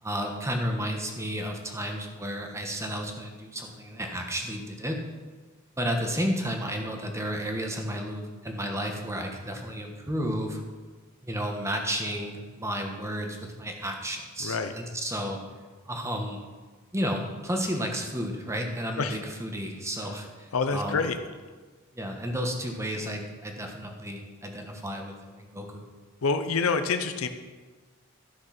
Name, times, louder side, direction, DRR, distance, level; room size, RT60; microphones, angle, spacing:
voice 1, 0.0-5.0 5.8-10.6 11.2-15.4 15.8-16.5 16.9-21.1 21.9-25.9, equal, 15° right, 2 dB, 1.3 m, -32 dB
voice 2, 14.4-14.7 19.0-19.2 20.5-21.2 26.2-27.3, left 4 dB, 90° left, 8 dB, 0.7 m, -26 dB
13.0 x 6.3 x 5.9 m, 1.4 s
head